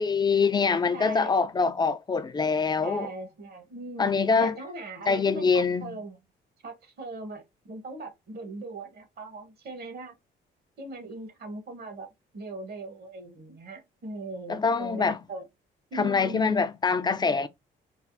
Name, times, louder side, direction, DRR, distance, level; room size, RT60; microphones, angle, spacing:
voice 1, 0.0-3.1 4.0-4.5 5.1-6.0 14.5-15.2 15.9-17.5, left 5 dB, 20° left, 0.3 m, -24 dB
voice 2, 0.9-1.4 2.8-4.1 4.4-6.2 6.6-10.1 10.8-12.1 12.3-15.4 15.9-16.6, right 2 dB, 55° right, 1.0 m, -39 dB
3.3 x 2.0 x 2.5 m
cardioid pair, 90°, 20 cm